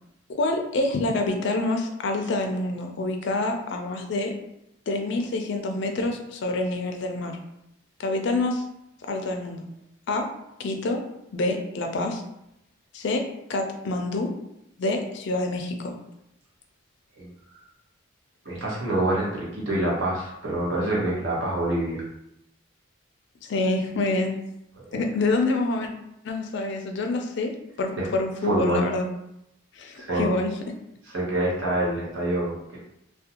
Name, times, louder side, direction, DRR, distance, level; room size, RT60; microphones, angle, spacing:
voice 1, 0.3-4.3 4.9-7.4 8.0-8.6 9.1-9.6 10.1-10.3 10.6-11.0 11.3-12.2 12.9-13.2 13.5-14.3 14.8-15.9 23.5-24.4 24.9-25.9 26.2-27.5 27.8-29.1 29.7-30.5, left 2 dB, 55° left, 4 dB, 0.4 m, -26 dB
voice 2, 18.4-22.0 24.8-25.1 28.0-28.1 28.4-28.9 30.0-30.3 31.1-32.8, right 1 dB, 70° right, -5 dB, 0.9 m, -26 dB
2.5 x 2.1 x 2.8 m, 0.82 s
head